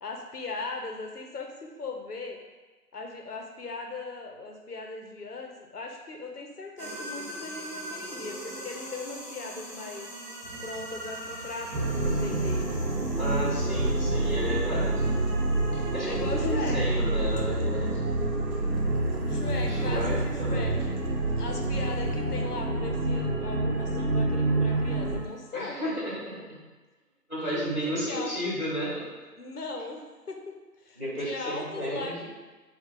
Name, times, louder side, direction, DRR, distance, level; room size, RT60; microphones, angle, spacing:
voice 1, 0.0-2.4 2.9-10.1 10.6-12.7 16.0-17.0 19.3-21.0 21.4-25.8 27.6-28.3 29.4-32.3, left 3 dB, 65° left, 2 dB, 0.8 m, -39 dB
sound 1, 6.8-25.4, right 1 dB, 30° right, 1.0 m, -44 dB
sound 2, 10.4-22.2, right 2 dB, 60° right, 0.6 m, -44 dB
sound 3, 11.7-25.2, right 2 dB, 85° right, 0.8 m, -27 dB
voice 2, 13.2-15.0 15.7-18.0 19.7-20.9 25.5-26.6 27.3-29.1 31.0-32.1, equal, 25° left, -7 dB, 1.1 m, -32 dB
4.1 x 2.4 x 3.6 m, 1.3 s
figure-of-eight pair, 165°, 49 cm